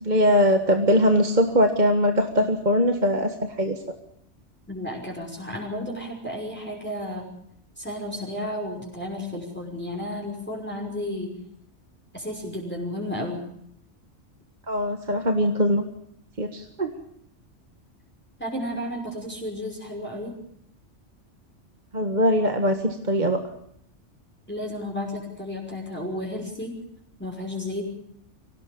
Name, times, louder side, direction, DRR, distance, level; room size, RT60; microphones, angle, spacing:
voice 1, 0.0-4.0 14.7-15.8 16.4-16.9 21.9-23.4, equal, 40° right, 5 dB, 1.9 m, -21 dB
voice 2, 4.7-7.3 7.8-11.4 12.1-13.4 18.4-20.4 24.5-26.8 27.2-27.8, left 1 dB, 10° left, -1 dB, 5.6 m, -32 dB
25.0 x 17.5 x 7.0 m, 0.71 s
omnidirectional pair, 1.2 m